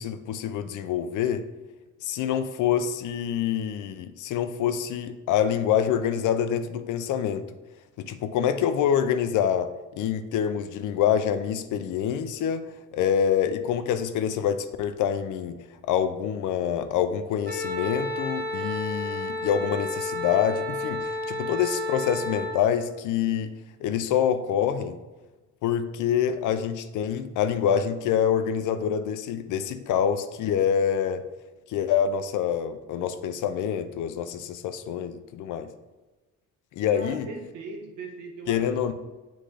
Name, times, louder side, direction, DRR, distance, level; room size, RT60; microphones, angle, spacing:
voice 1, 0.0-1.4 2.0-7.4 8.0-12.6 12.9-15.6 15.9-23.5 23.8-25.0 25.6-31.2 31.7-35.7 36.8-37.3 38.5-38.9, left 8 dB, 85° left, 10 dB, 0.6 m, -26 dB
Wind instrument woodwind instrument, 17.4-22.6, left 1 dB, 50° right, 1.6 m, -31 dB
voice 2, 36.9-38.9, right 3 dB, 90° right, 3 dB, 1.1 m, -40 dB
7.8 x 3.8 x 3.3 m, 1.2 s
cardioid pair, 90°, 30 cm